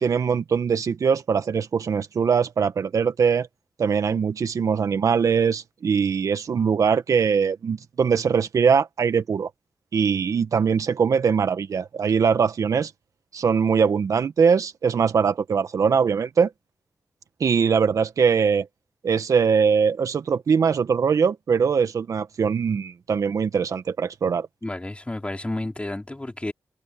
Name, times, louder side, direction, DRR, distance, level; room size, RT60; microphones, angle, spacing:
voice 1, 0.0-3.5 3.8-9.5 9.9-12.9 13.3-16.5 17.4-18.7 19.0-24.5, right 6 dB, 65° right, 1.6 m, -22 dB
voice 2, 24.6-26.5, left 2 dB, 20° left, 4.4 m, -31 dB
cardioid pair, 50°, 6 cm